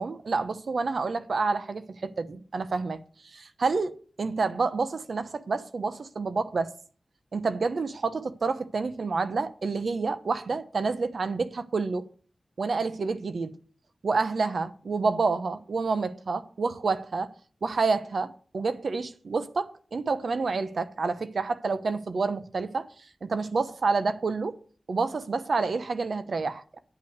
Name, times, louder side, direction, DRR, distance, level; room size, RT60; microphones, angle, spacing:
voice 1, 0.0-3.0 3.2-6.7 7.3-12.1 12.6-13.5 14.0-17.3 17.6-22.9 23.2-24.6 24.9-26.8, right 4 dB, 80° right, 0.9 m, -28 dB
9.9 x 5.8 x 8.1 m
wide cardioid pair, 65°, 0 cm